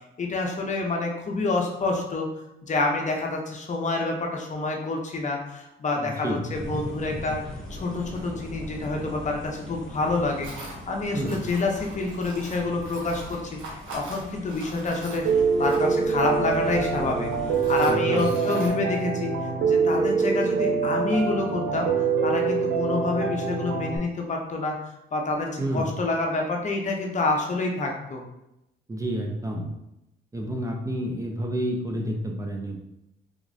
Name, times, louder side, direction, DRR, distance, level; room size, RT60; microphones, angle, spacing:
voice 1, 0.2-2.3 2.6-7.4 7.7-19.3 19.6-21.9 22.2-24.8 25.1-28.2, left 3 dB, 35° left, 1 dB, 0.7 m, -28 dB
voice 2, 6.0-6.5 11.1-11.4 17.9-18.3 25.6-25.9 28.9-29.7 30.3-32.8, right 1 dB, 15° right, 1 dB, 0.5 m, -29 dB
sound 1, 6.5-17.9, left 1 dB, ahead, 1.3 m, -40 dB
Tools, 8.1-8.2 10.4-10.8 11.2-16.1 16.8-16.9 17.3-18.7, right 2 dB, 85° right, 1.2 m, -42 dB
Piano, 15.2-24.0, right 5 dB, 65° right, 0.5 m, -24 dB
3.5 x 3.0 x 2.6 m, 0.88 s
cardioid pair, 90°, 20 cm